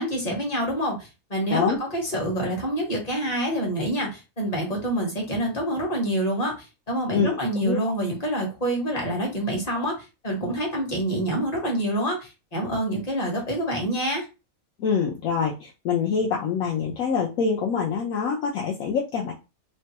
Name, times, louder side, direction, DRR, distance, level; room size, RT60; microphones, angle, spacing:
voice 1, 0.0-14.3, right 1 dB, 30° left, -1 dB, 1.0 m, -27 dB
voice 2, 7.1-7.8 14.8-19.3, left 6 dB, 75° left, -2 dB, 1.0 m, -25 dB
3.0 x 2.2 x 2.8 m, 0.28 s
omnidirectional pair, 1.5 m